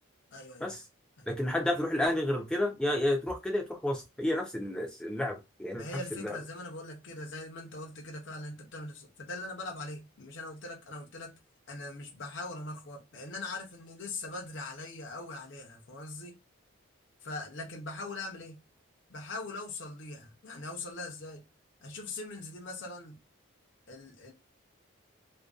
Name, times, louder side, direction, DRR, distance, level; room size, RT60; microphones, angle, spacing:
voice 1, 0.3-0.7 1.2-1.3 5.7-11.4 11.7-16.4 17.2-18.6 19.1-21.4 21.8-23.2 23.9-24.3, left 2 dB, 60° left, 0.6 m, -41 dB
voice 2, 1.3-5.8 6.2-6.4, left 1 dB, 5° left, 0.4 m, -30 dB
2.5 x 2.1 x 2.3 m
head